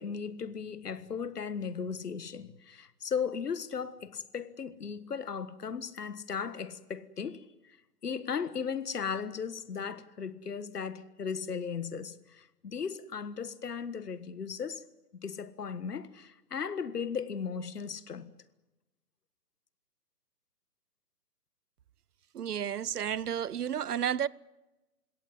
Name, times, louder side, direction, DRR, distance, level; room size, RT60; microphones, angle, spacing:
voice 1, 0.0-7.8 8.0-14.8 15.2-18.3, left 6 dB, 75° left, 1.6 m, -36 dB
voice 2, 22.3-24.3, right 9 dB, 70° right, 0.8 m, -31 dB
21.5 x 17.0 x 9.6 m
figure-of-eight pair, 135°, 48 cm